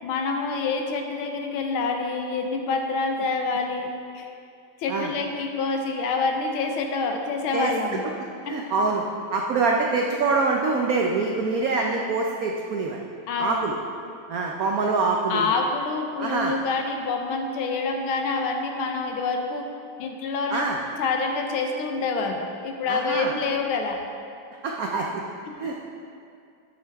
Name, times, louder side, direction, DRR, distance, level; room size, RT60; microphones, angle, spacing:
voice 1, 0.0-4.3 4.8-8.0 8.5-8.6 13.3-13.7 15.3-19.6 20.0-20.7 21.0-24.0 25.5-25.6, left 4 dB, 80° left, 3 dB, 1.6 m, -27 dB
voice 2, 8.4-9.0 9.3-13.0 13.4-13.8 14.3-15.5 16.2-16.5 20.5-20.8 22.9-23.3 24.6-25.2 25.6-25.8, right 4 dB, 85° right, 0 dB, 0.7 m, -25 dB
9.9 x 8.2 x 3.4 m, 2.4 s
omnidirectional pair, 2.3 m